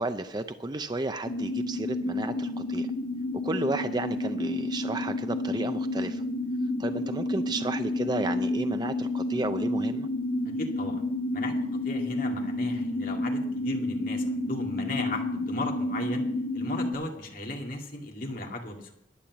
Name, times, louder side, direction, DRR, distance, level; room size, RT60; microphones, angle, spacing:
voice 1, 0.0-2.9 3.4-6.2 6.8-10.1, right 2 dB, 20° right, 9 dB, 0.5 m, -32 dB
sound 1, 1.3-16.9, left 1 dB, 80° left, 1.6 m, -30 dB
voice 2, 10.6-11.1 11.3-11.5 11.8-16.3 16.5-19.0, left 2 dB, 45° left, 1 dB, 2.3 m, -36 dB
11.5 x 8.7 x 7.1 m, 0.74 s
head